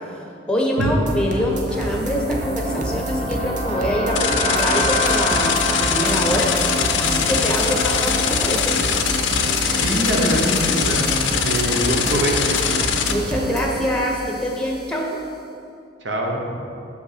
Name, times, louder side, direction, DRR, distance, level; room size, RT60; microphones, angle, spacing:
voice 1, 0.1-6.5 7.0-8.8 13.1-15.2, equal, 5° left, 0 dB, 0.8 m, -24 dB
sound 1, 0.8-13.7, right 1 dB, 40° right, 0.7 m, -28 dB
sound 2, 1.6-15.0, equal, 25° right, 1.3 m, -30 dB
sound 3, 4.1-13.1, left 7 dB, 75° left, 0.5 m, -22 dB
voice 2, 9.7-11.1 11.4-12.7 16.0-16.5, right 1 dB, 65° right, 0 dB, 1.0 m, -23 dB
6.7 x 5.3 x 5.0 m, 2.5 s
head